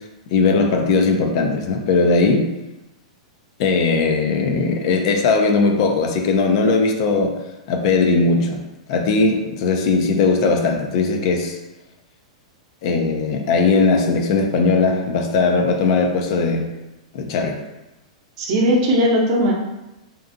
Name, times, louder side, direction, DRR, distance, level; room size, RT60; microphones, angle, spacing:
voice 1, 0.3-2.5 3.6-7.4 7.7-8.6 8.9-11.6 12.8-16.7 17.1-17.6, left 4 dB, 55° left, 3 dB, 0.4 m, -18 dB
voice 2, 18.4-19.5, equal, 50° right, -1 dB, 0.7 m, -17 dB
2.5 x 2.4 x 2.6 m, 0.96 s
hypercardioid pair, 120°, 3 cm